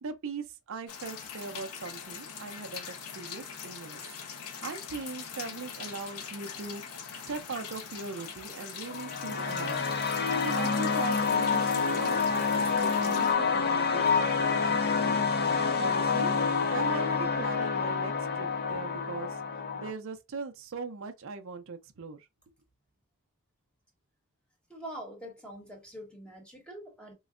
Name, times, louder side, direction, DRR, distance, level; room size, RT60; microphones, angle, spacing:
voice 1, 0.0-4.1 4.6-6.8 7.3-9.8 10.4-15.2 15.8-16.3 16.7-19.4 19.8-22.3, right 4 dB, 60° right, 0.5 m, -40 dB
sound 1, 0.9-13.3, left 7 dB, 85° left, 0.7 m, -42 dB
sound 2, 8.9-19.9, left 5 dB, 45° left, 0.6 m, -28 dB
voice 2, 24.7-27.1, right 1 dB, 5° left, 1.0 m, -44 dB
3.8 x 2.1 x 2.4 m
head